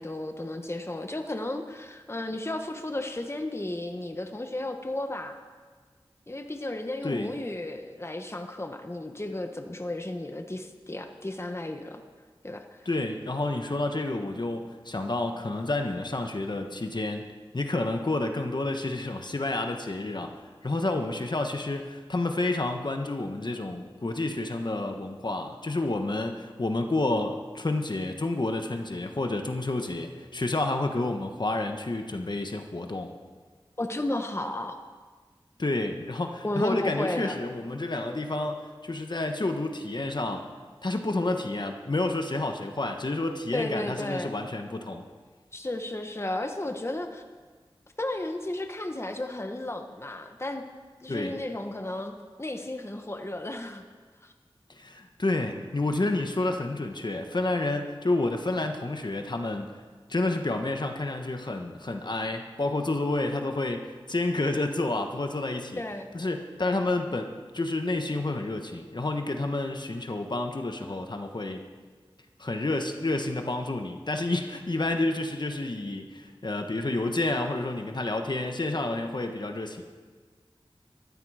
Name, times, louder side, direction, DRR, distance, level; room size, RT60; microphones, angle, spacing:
voice 1, 0.0-5.4 6.3-12.0 12.4-12.9 33.8-34.8 36.4-37.4 43.5-44.3 45.5-47.2 48.0-50.6 51.0-53.8 54.2-54.3 65.8-66.1, left 1 dB, 30° left, 5 dB, 1.2 m, -33 dB
voice 2, 12.8-20.3 20.6-33.1 35.6-40.5 40.8-45.0 51.1-51.4 54.7-59.7 60.1-65.8 66.1-71.6 72.4-79.8, left 2 dB, 50° left, 5 dB, 1.3 m, -29 dB
19.5 x 14.0 x 5.0 m, 1.5 s
wide cardioid pair, 65°, 9 cm